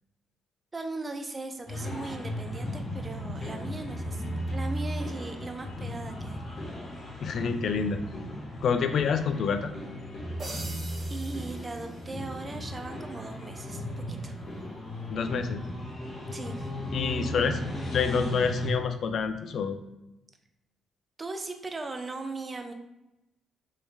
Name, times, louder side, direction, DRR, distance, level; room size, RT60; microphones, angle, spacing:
voice 1, 0.7-6.4 11.1-14.3 16.3-16.7 21.2-22.7, right 3 dB, 25° right, 5 dB, 0.5 m, -38 dB
sound 1, 1.7-18.7, equal, 45° left, 1.2 m, -36 dB
voice 2, 7.2-8.0 8.6-9.7 15.1-15.6 16.9-17.6 17.9-19.8, left 6 dB, 60° left, 8 dB, 0.4 m, -27 dB
sound 2, 10.4-12.5, right 2 dB, 45° right, 1.3 m, -43 dB
3.1 x 3.1 x 3.5 m, 0.94 s
cardioid pair, 90°, 0 cm